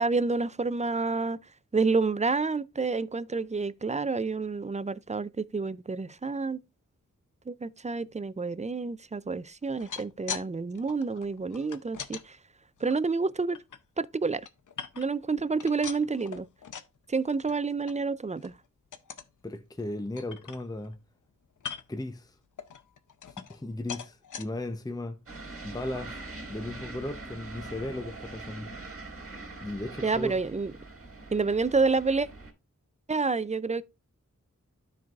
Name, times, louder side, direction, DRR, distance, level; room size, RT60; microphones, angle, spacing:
voice 1, 0.0-1.4 1.7-6.6 7.5-12.4 12.8-13.6 14.0-14.4 15.0-16.5 17.1-18.5 30.0-30.7 31.3-32.3 33.1-33.8, right 4 dB, 25° right, 0.3 m, -29 dB
sound 1, 9.6-10.5 10.7-12.2 12.8-13.8 14.2-15.2 15.5-17.0 17.3-17.6 17.9-18.0 18.4-18.6 18.9-19.3 19.8-19.9 20.2-21.0 21.6-22.0 22.6-23.6 23.9-24.5 25.1-25.2 25.5-25.6, left 7 dB, 80° left, 0.6 m, -41 dB
voice 2, 19.4-21.0 21.9-22.3 23.5-25.2 25.6-26.2 26.5-28.7 29.6-30.4, left 1 dB, 10° left, 0.7 m, -36 dB
sound 2, 25.3-32.5, right 2 dB, 50° right, 2.2 m, -43 dB
13.0 x 4.6 x 2.4 m
wide cardioid pair, 60°, 31 cm